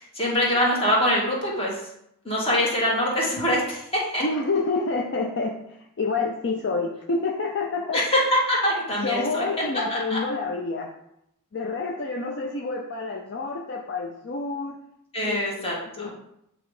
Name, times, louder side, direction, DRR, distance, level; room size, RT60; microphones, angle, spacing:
voice 1, 0.0-1.8 2.2-4.2 7.9-9.5 9.9-10.2 15.1-16.1, equal, 25° left, -3 dB, 1.8 m, -24 dB
voice 2, 4.2-8.0 9.0-10.9 11.5-14.8 15.2-15.4 16.0-16.1, left 3 dB, 50° left, 1 dB, 0.6 m, -28 dB
8.3 x 3.0 x 4.8 m, 0.78 s
head